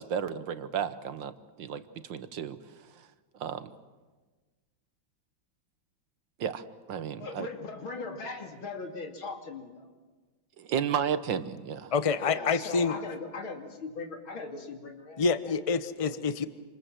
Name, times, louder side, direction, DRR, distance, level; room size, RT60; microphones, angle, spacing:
voice 1, 0.0-1.3 1.6-1.8 2.1-2.6 3.4-3.7 6.4-7.5 10.6-11.9, right 8 dB, 70° right, 12 dB, 1.8 m, -32 dB
voice 2, 7.2-9.9 12.2-15.2 16.0-16.3, left 3 dB, 85° left, 3 dB, 3.5 m, -39 dB
voice 3, 11.9-13.0 15.2-16.4, left 5 dB, 25° left, 11 dB, 0.8 m, -27 dB
28.0 x 27.0 x 7.6 m, 1.3 s
omnidirectional pair, 2.2 m